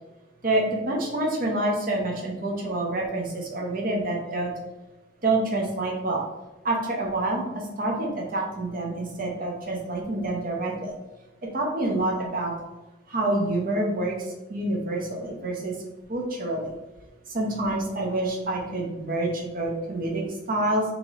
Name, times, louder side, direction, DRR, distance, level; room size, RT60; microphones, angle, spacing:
voice 1, 0.4-4.5 5.2-6.2 6.6-7.4 7.8-10.9 11.5-12.5 13.1-14.2 14.5-15.7 16.1-16.7 17.3-20.8, right 2 dB, 45° right, -1 dB, 0.8 m, -27 dB
3.1 x 2.9 x 3.9 m, 1.1 s
head